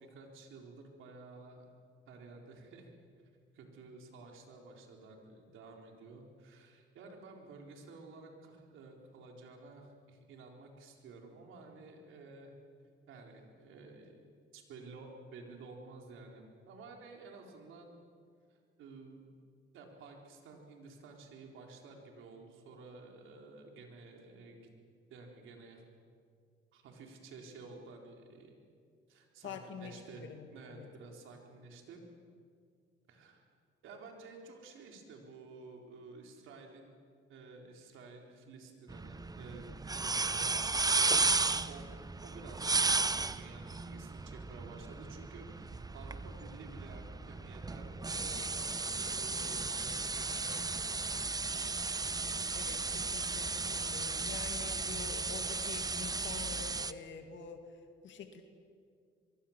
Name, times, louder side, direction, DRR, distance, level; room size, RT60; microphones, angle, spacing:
voice 1, 0.0-1.7 2.1-2.9 3.5-12.5 13.1-14.2 14.5-17.9 18.5-19.3 19.7-24.7 25.1-25.8 26.7-28.5 29.1-30.2 30.5-32.0 33.1-33.5 33.8-37.0 37.3-41.4 41.7-41.9 42.2-50.9, right 3 dB, 85° right, 2 dB, 4.2 m, -52 dB
voice 2, 29.4-30.9 52.1-52.2 52.5-57.7 58.0-58.4, left 6 dB, 70° left, 6 dB, 2.3 m, -47 dB
sound 1, 38.9-56.9, right 3 dB, 20° right, 0.8 m, -34 dB
25.0 x 23.0 x 7.4 m, 2.2 s
cardioid pair, 90°, 20 cm